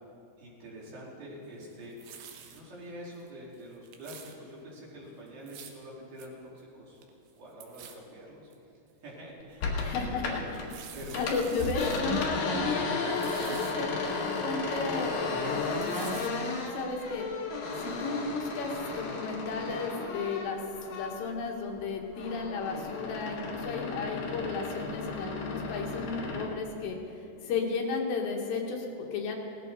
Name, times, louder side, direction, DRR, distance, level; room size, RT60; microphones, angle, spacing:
voice 1, 0.4-2.0 2.5-7.0 7.4-8.5 9.0-11.3 11.8-12.1, equal, 60° right, -5 dB, 4.2 m, -46 dB
sound 1, 1.6-2.6 3.1-3.3 3.5-4.4 5.3-5.8 6.2-6.3 6.6-6.7 7.0-7.3 7.6-8.0 8.5-8.6 9.2-9.3 10.4-12.0 12.4-12.5 12.8-13.7 14.2-15.2 15.4-16.3 16.7-16.8, right 8 dB, 75° right, 3.0 m, -48 dB
sound 2, 9.6-10.7 11.0-21.3 21.7-26.5, left 3 dB, 60° left, 2.8 m, -34 dB
voice 2, 9.8-10.4 11.2-13.9 14.4-17.3 17.8-29.4, left 4 dB, 75° left, 1 dB, 3.4 m, -34 dB
18.0 x 14.0 x 4.0 m, 2.8 s
omnidirectional pair, 5.1 m